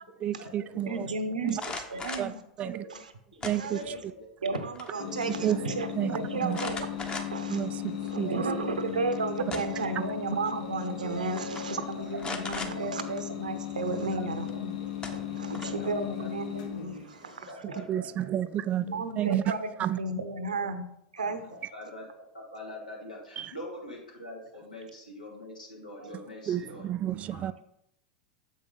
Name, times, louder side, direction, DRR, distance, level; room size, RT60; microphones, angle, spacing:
voice 1, 0.2-1.1 1.4-1.6 2.2-2.8 3.4-3.9 5.4-5.6 6.0-6.6 7.5-8.5 10.0-10.1 17.8-19.5 19.8-20.0 23.4-23.5 26.5-27.6, right 11 dB, 35° right, 0.3 m, -31 dB
voice 2, 0.7-2.4 3.5-4.0 4.4-14.8 15.1-17.8 18.8-20.9 21.1-21.4 26.0-26.2, right 3 dB, 85° right, 0.8 m, -34 dB
sound 1, 1.5-2.3 3.4-4.0 4.4-4.9 5.2-5.3 6.5-7.5 8.1-8.2 9.2-9.9 10.9-11.1 11.4-11.6 12.2-12.7 14.5-14.6 15.0-15.9, left 3 dB, 20° left, 1.0 m, -38 dB
voice 3, 2.6-2.9 3.3-3.4 3.7-4.2 4.9-5.5 15.6-15.9 16.2-16.3 17.5-18.0 18.4-18.5 18.8-19.0 19.2-19.3 21.2-22.1 22.3-26.9 27.3-27.5, left 1 dB, 85° left, 2.6 m, -44 dB
sound 2, 5.0-17.3, left 11 dB, 70° left, 1.4 m, -37 dB
7.2 x 5.2 x 3.9 m
hypercardioid pair, 90°, 4 cm